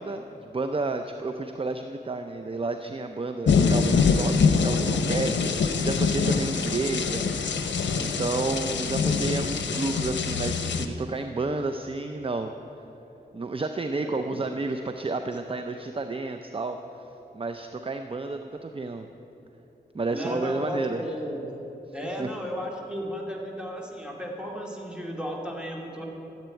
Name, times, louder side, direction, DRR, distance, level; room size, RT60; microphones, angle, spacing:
voice 1, 0.0-4.3 4.6-7.2 8.0-12.5 13.3-16.8 17.3-19.1 19.9-21.0 22.2-22.3, right 3 dB, 30° right, 7 dB, 0.6 m, -31 dB
sound 1, 3.5-10.9, left 5 dB, 85° left, 0.8 m, -24 dB
voice 2, 14.0-14.3 20.1-21.4 21.9-26.0, equal, 5° right, -1 dB, 2.5 m, -34 dB
13.5 x 8.1 x 9.2 m, 3.0 s
wide cardioid pair, 75°, 18 cm